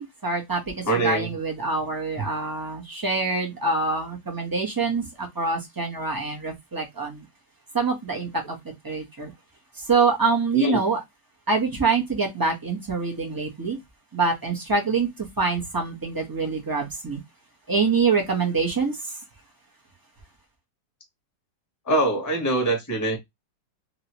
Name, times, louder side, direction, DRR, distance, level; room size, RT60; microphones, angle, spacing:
voice 1, 0.0-7.2 7.7-8.6 8.8-9.3 9.9-11.0 11.5-13.8 14.1-17.2 17.7-19.1, right 4 dB, 20° right, 0.7 m, -25 dB
voice 2, 0.8-1.3 2.2-2.3 10.5-10.8 21.9-23.2, right 2 dB, 15° left, 0.9 m, -23 dB
2.9 x 2.9 x 2.8 m
omnidirectional pair, 1.9 m